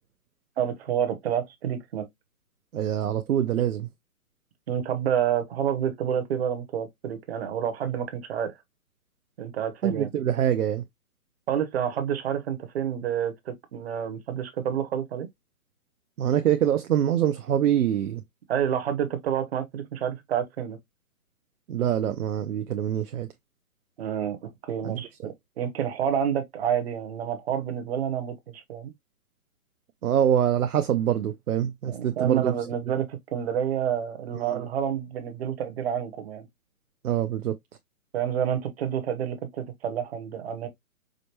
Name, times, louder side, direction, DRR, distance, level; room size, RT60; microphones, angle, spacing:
voice 1, 0.6-2.1 4.7-8.6 9.4-10.1 11.5-15.3 18.5-20.8 24.0-28.9 31.9-36.5 38.1-40.7, right 9 dB, 45° right, 0.9 m, -29 dB
voice 2, 2.7-3.9 9.8-10.8 16.2-18.2 21.7-23.3 24.8-25.3 30.0-32.5 34.5-34.6 37.0-37.6, right 10 dB, 70° right, 0.7 m, -25 dB
5.0 x 2.1 x 2.9 m
hypercardioid pair, 150°, 44 cm